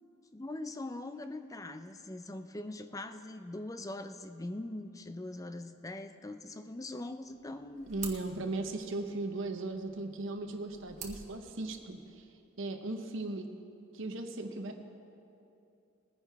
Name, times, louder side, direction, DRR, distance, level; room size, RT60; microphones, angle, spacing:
voice 1, 0.3-7.9, left 2 dB, 15° left, 9 dB, 0.4 m, -42 dB
sound 1, 7.2-12.2, right 6 dB, 35° right, 1.2 m, -50 dB
voice 2, 7.9-12.2 12.6-13.5 13.9-14.8, right 2 dB, 60° right, 5 dB, 0.8 m, -37 dB
20.5 x 10.0 x 3.5 m, 2.7 s
head